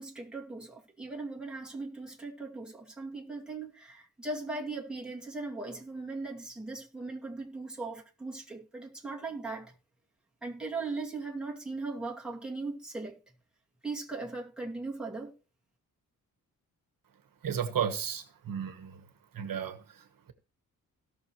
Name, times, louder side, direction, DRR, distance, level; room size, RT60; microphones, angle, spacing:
voice 1, 0.0-9.7 10.4-13.2 13.8-15.3, right 3 dB, ahead, 2.4 m, -39 dB
voice 2, 17.4-20.3, right 8 dB, 65° right, 1.4 m, -35 dB
17.5 x 6.4 x 3.1 m
wide cardioid pair, 120°, 37 cm